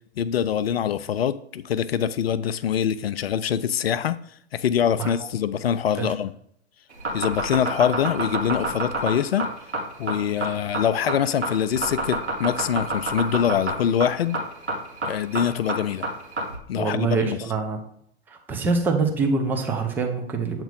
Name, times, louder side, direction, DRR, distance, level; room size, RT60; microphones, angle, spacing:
voice 1, 0.2-4.2 4.5-6.3 7.1-9.5 10.0-14.4 15.0-16.0 16.7-17.4, left 9 dB, 60° left, 0.5 m, -24 dB
sound 1, 6.9-16.6, right 2 dB, 75° right, 1.7 m, -27 dB
voice 2, 16.8-17.8 18.3-20.6, right 4 dB, 5° right, 0.5 m, -25 dB
8.0 x 3.0 x 5.3 m
figure-of-eight pair, 105°, 34 cm